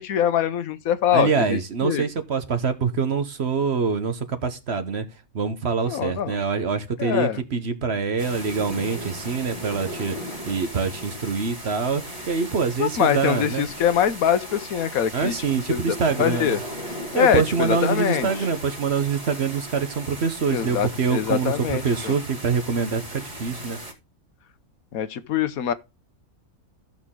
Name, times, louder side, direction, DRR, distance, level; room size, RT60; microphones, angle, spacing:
voice 1, 0.0-2.0 5.9-6.4 7.0-7.4 12.8-15.3 15.7-16.6 17.1-18.3 20.5-22.1 24.9-25.7, left 9 dB, 75° left, 1.2 m, -23 dB
voice 2, 1.1-5.1 5.3-13.7 15.1-16.6 17.1-23.8, right 5 dB, 50° right, 1.2 m, -25 dB
sound 1, 8.2-23.9, equal, 25° right, 2.3 m, -37 dB
14.0 x 6.5 x 3.7 m
omnidirectional pair, 1.5 m